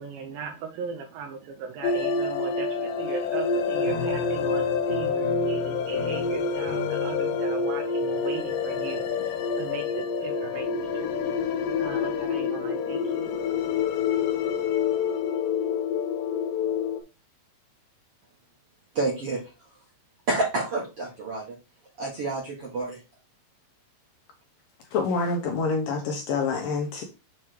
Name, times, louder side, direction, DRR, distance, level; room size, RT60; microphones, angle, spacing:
voice 1, 0.0-13.8, right 5 dB, 75° right, 2.2 m, -38 dB
sound 1, 1.8-17.0, left 5 dB, 85° left, 1.9 m, -27 dB
sound 2, 3.8-12.1, left 4 dB, 20° left, 1.0 m, -41 dB
voice 2, 18.9-19.4 20.3-21.4 22.0-23.0, right 2 dB, 60° right, 1.5 m, -28 dB
voice 3, 24.9-27.0, left 4 dB, 70° left, 2.2 m, -27 dB
7.2 x 3.3 x 4.5 m
omnidirectional pair, 4.7 m